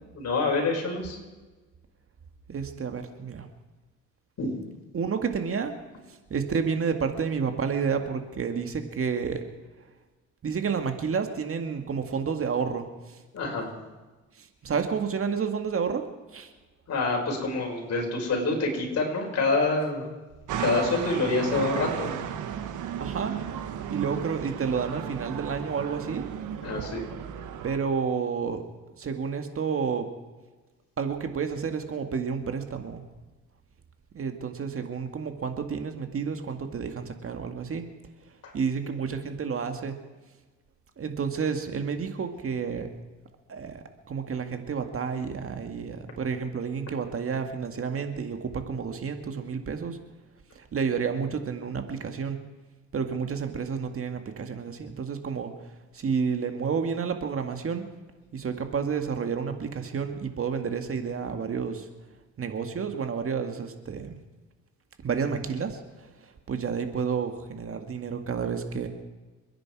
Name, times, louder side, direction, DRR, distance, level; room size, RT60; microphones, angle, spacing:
voice 1, 0.2-1.2 4.4-4.5 13.3-13.7 16.9-20.1 20.6-22.2 26.6-27.1 38.4-38.5, left 3 dB, 55° left, 0 dB, 6.0 m, -27 dB
voice 2, 2.5-3.5 4.9-5.7 6.1-9.4 10.4-13.2 14.3-16.0 16.3-16.5 23.0-23.4 23.9-26.3 27.6-28.6 29.0-30.1 31.0-33.0 34.1-37.8 38.3-40.0 41.0-42.9 43.5-50.0 50.6-52.4 52.9-55.5 55.9-57.9 58.3-61.9 62.4-64.1 65.0-68.9, right 6 dB, 45° right, 6 dB, 2.0 m, -30 dB
sound 1, 20.5-27.8, right 9 dB, 85° right, 1.5 m, -34 dB
29.0 x 10.5 x 4.8 m, 1.2 s
cardioid pair, 90°, 30 cm